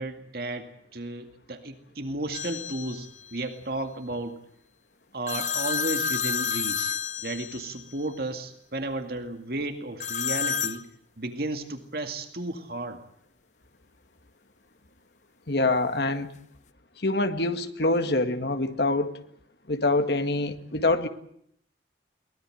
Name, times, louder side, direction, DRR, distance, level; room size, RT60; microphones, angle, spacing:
voice 1, 0.0-4.4 5.1-10.9 11.2-13.0, right 2 dB, 55° right, 6 dB, 2.2 m, -33 dB
sound 1, 2.3-3.1 5.3-7.9 10.0-10.8, left 7 dB, 40° left, 0.9 m, -30 dB
voice 2, 15.5-16.3 17.0-19.2 19.7-21.1, left 2 dB, 65° left, 8 dB, 2.0 m, -25 dB
23.0 x 20.5 x 7.8 m, 0.68 s
head